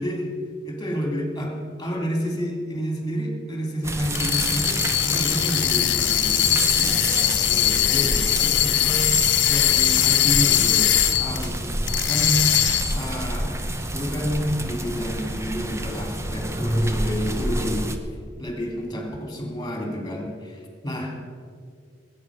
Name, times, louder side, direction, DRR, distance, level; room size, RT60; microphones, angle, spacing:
voice 1, 0.6-1.5 1.8-10.9 11.2-11.7 12.1-12.4 12.9-13.5 13.9-17.9 18.4-21.2, equal, 20° left, 1 dB, 3.0 m, -30 dB
sound 1, 3.8-18.0, right 1 dB, 15° right, 0.9 m, -28 dB
sound 2, 4.1-11.5 11.9-13.1, left 11 dB, 85° left, 1.2 m, -21 dB
20.0 x 9.4 x 6.2 m, 2.2 s
head